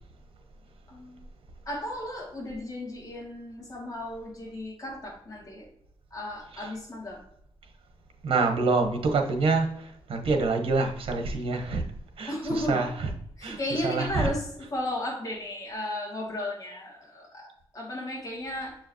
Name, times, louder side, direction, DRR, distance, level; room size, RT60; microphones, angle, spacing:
voice 1, 0.9-1.3 1.7-5.7 6.1-7.2 12.3-12.9 13.4-14.4 14.7-18.8, left 1 dB, 40° left, 2.8 m, -34 dB
voice 2, 8.2-11.8 12.2-13.1 13.4-14.3, right 3 dB, 75° right, 1.3 m, -27 dB
7.1 x 4.9 x 3.1 m
wide cardioid pair, 145°, 10 cm